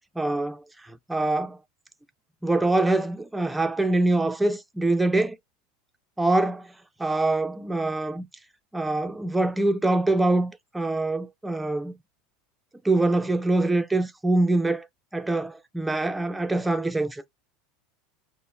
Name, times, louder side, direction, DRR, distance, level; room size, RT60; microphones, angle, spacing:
voice 1, 0.2-0.6 0.9-1.6 2.4-5.4 6.2-6.7 7.0-8.3 8.7-11.9 12.8-14.9 15.1-17.2, right 2 dB, 5° right, 0.5 m, -24 dB
5.3 x 2.0 x 2.6 m
supercardioid pair, 105°, 0 cm